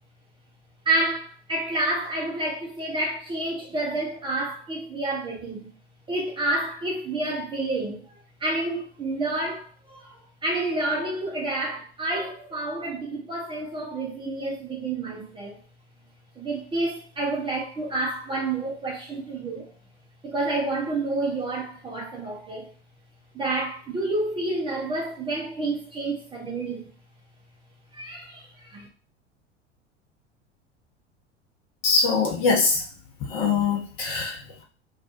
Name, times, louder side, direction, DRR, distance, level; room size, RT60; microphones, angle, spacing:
voice 1, 0.9-5.7 6.1-8.0 8.4-10.1 10.4-15.6 16.4-19.7 20.2-22.7 23.3-26.9 27.9-28.9, right 2 dB, 15° right, 0.5 m, -29 dB
voice 2, 31.8-32.8 33.3-34.6, left 4 dB, 45° left, 1.0 m, -23 dB
2.5 x 2.3 x 2.4 m
figure-of-eight pair, 80°, 35 cm